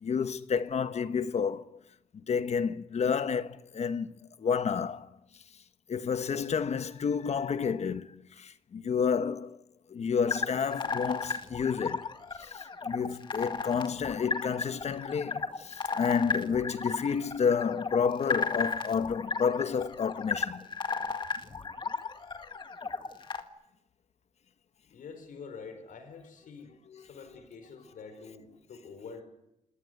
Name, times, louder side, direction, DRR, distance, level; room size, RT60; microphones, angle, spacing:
voice 1, 0.0-1.6 2.3-5.1 5.9-9.6 9.9-12.1 12.4-20.7 26.9-27.0, left 6 dB, 55° left, 1.1 m, -30 dB
sound 1, 10.3-23.4, left 4 dB, 35° left, 1.9 m, -34 dB
voice 2, 24.9-26.7 27.0-29.2, left 5 dB, 80° left, 5.2 m, -46 dB
28.5 x 18.5 x 9.6 m
wide cardioid pair, 135°, 14 cm